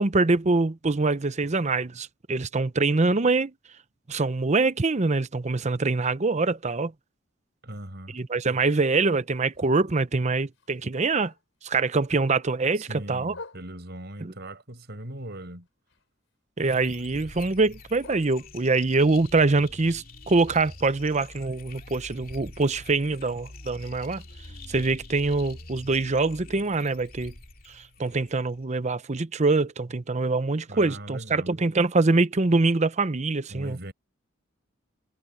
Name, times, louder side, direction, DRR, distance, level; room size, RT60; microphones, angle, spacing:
voice 1, 0.0-3.5 4.1-6.9 8.1-11.3 11.6-13.3 14.2-14.3 16.6-24.2 24.7-27.3 27.7-33.8, right 3 dB, 35° right, 0.7 m, -24 dB
voice 2, 7.6-8.2 12.8-15.7 30.7-31.6 33.5-33.9, right 1 dB, 55° right, 6.4 m, -39 dB
Bark, 8.6-11.8 12.2-14.1 14.5-16.4 16.6-19.0 19.4-23.3 23.7-23.8 24.1-24.4 24.9-25.0 25.3-25.4 25.9-26.0, left 3 dB, 70° left, 6.1 m, -52 dB
sound 1, 16.6-28.6, left 2 dB, 50° left, 2.5 m, -45 dB
head